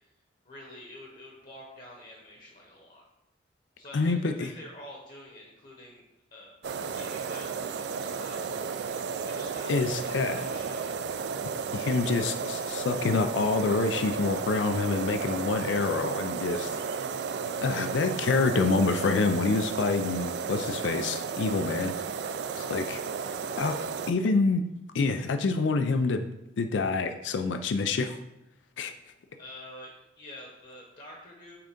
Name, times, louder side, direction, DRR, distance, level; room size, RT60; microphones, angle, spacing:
voice 1, 0.4-3.1 3.8-6.0 6.3-6.6 7.0-8.4 9.3-11.3 29.4-31.6, left 1 dB, 45° left, -1 dB, 1.1 m, -47 dB
voice 2, 3.9-4.5 9.7-10.4 11.7-16.8 17.6-21.9 22.6-23.0 23.6-23.8 24.1-24.6 24.9-26.3 26.6-28.2 28.8-28.9, left 3 dB, 85° left, 8 dB, 0.4 m, -27 dB
sound 1, 6.6-24.1, right 5 dB, 65° right, 0.3 m, -33 dB
5.8 x 3.7 x 5.1 m, 0.92 s
head